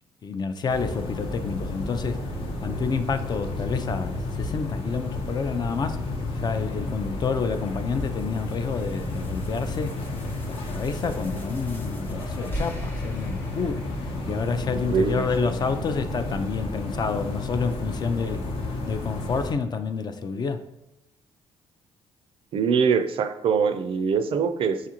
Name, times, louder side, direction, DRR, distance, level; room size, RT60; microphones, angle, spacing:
voice 1, 0.2-2.2 2.6-6.1 6.4-10.0 10.4-13.8 14.3-18.5 18.9-20.6, left 5 dB, 40° left, 9 dB, 0.4 m, -29 dB
sound 1, 0.7-19.5, left 2 dB, 60° left, 0.8 m, -32 dB
sound 2, 6.8-14.7, equal, 20° left, 0.8 m, -43 dB
voice 2, 14.9-15.3 22.5-24.9, right 6 dB, 55° right, 10 dB, 0.4 m, -23 dB
6.4 x 2.4 x 2.8 m, 0.89 s
supercardioid pair, 75°, 11 cm